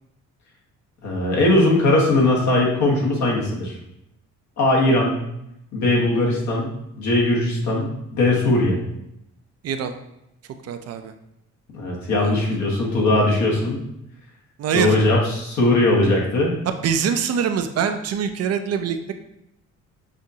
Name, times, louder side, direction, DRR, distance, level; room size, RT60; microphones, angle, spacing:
voice 1, 1.0-3.8 4.6-5.2 5.7-6.7 7.0-8.8 11.7-13.8 14.7-16.5, left 2 dB, 70° left, -2 dB, 1.3 m, -19 dB
voice 2, 10.6-11.1 12.2-12.4 14.6-15.0 16.7-19.2, right 7 dB, 55° right, 7 dB, 0.5 m, -24 dB
6.1 x 2.5 x 2.8 m, 0.82 s
cardioid pair, 90°, 30 cm